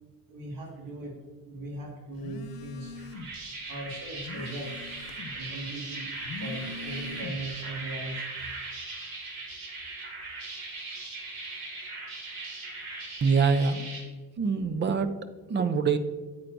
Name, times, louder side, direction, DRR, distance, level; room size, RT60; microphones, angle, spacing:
voice 1, 0.3-1.2 1.4-3.0 3.7-4.9 5.3-8.5, right 1 dB, 70° right, -1 dB, 1.9 m, -39 dB
Telephone, 2.2-3.4 3.8-5.5 6.1-7.6, left 3 dB, 80° left, 0.9 m, -42 dB
sound 1, 3.0-14.0, right 3 dB, 90° right, 2.3 m, -39 dB
voice 2, 13.2-13.9 14.4-15.1 15.5-16.0, right 5 dB, 30° right, 11 dB, 0.5 m, -24 dB
9.0 x 8.5 x 2.6 m, 1.3 s
cardioid pair, 170°, 35 cm